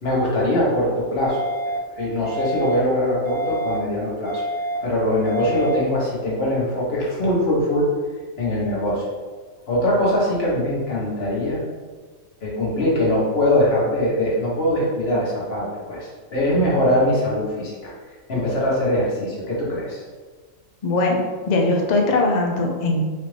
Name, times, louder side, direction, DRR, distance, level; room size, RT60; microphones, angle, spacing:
voice 1, 0.0-1.4 2.0-4.4 4.8-7.9 8.4-9.0 9.7-11.6 12.4-17.9 18.3-20.0, left 1 dB, 50° left, -6 dB, 1.3 m, -22 dB
sound 1, 1.3-1.8 2.3-2.8 3.3-3.8 4.3-4.8 5.3-5.8, right 1 dB, 70° right, 1.3 m, -27 dB
voice 2, 20.8-21.2 21.5-23.0, left 2 dB, 85° left, 1 dB, 0.3 m, -20 dB
4.2 x 2.5 x 3.2 m, 1.4 s
omnidirectional pair, 1.4 m